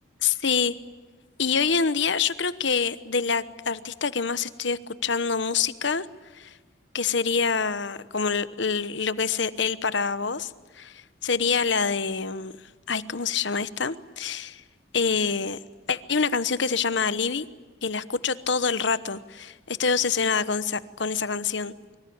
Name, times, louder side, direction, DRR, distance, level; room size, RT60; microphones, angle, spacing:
voice 1, 0.2-0.7 1.4-6.0 6.3-6.5 6.9-10.5 10.8-12.5 12.9-14.6 14.9-15.6 15.9-17.5 17.8-21.7, left 5 dB, 65° left, 14 dB, 1.1 m, -26 dB
24.5 x 24.0 x 8.7 m, 1.3 s
head